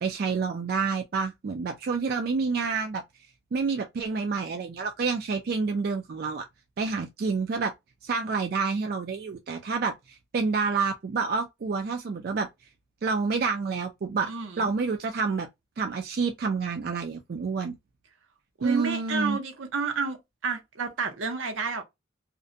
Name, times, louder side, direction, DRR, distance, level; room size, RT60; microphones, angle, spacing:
voice 1, 0.0-3.0 3.5-6.4 6.8-7.7 8.0-12.5 13.0-14.3 14.6-15.5 15.8-17.7 18.6-19.4, right 4 dB, 50° right, 0.3 m, -28 dB
voice 2, 14.3-14.7 18.6-20.2 20.4-21.8, right 4 dB, 80° right, 0.7 m, -30 dB
2.5 x 2.1 x 2.5 m
head